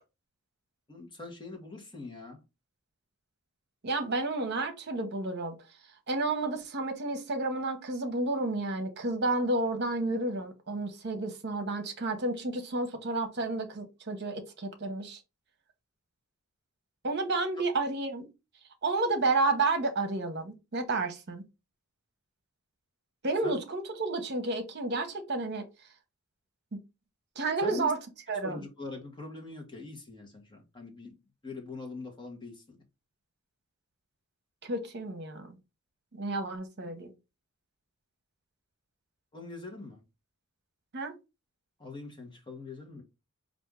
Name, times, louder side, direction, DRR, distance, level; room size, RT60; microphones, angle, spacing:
voice 1, 0.9-2.4 23.4-23.6 27.6-27.9 28.4-32.8 39.3-40.0 41.8-43.0, left 3 dB, 20° left, 1.2 m, -43 dB
voice 2, 3.8-5.5 6.1-15.2 17.0-18.3 18.8-21.4 23.2-25.7 27.4-28.0 28.3-28.6 34.6-35.5 36.1-37.1 40.9-41.1, right 2 dB, 50° right, 0.9 m, -31 dB
4.4 x 2.6 x 3.5 m
head